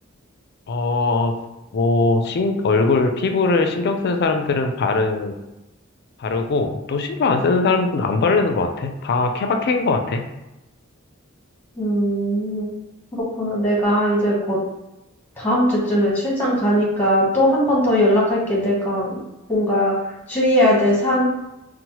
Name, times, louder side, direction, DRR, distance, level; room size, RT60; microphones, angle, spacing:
voice 1, 0.7-1.3 1.7-5.3 6.2-10.2, left 3 dB, 50° left, 5 dB, 0.3 m, -20 dB
voice 2, 11.8-12.7 13.1-14.6 15.4-19.2 19.5-21.2, equal, 10° left, -5 dB, 0.9 m, -19 dB
3.0 x 2.0 x 2.8 m, 0.95 s
head